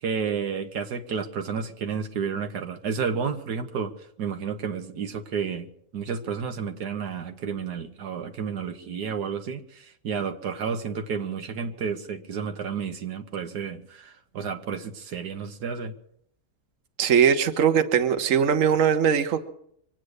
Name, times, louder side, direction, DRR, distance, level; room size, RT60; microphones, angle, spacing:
voice 1, 0.0-5.7 5.9-15.9, right 6 dB, 90° right, 6 dB, 1.8 m, -31 dB
voice 2, 17.0-19.4, right 8 dB, 55° right, 8 dB, 1.4 m, -20 dB
24.0 x 9.1 x 6.5 m, 0.71 s
omnidirectional pair, 1.7 m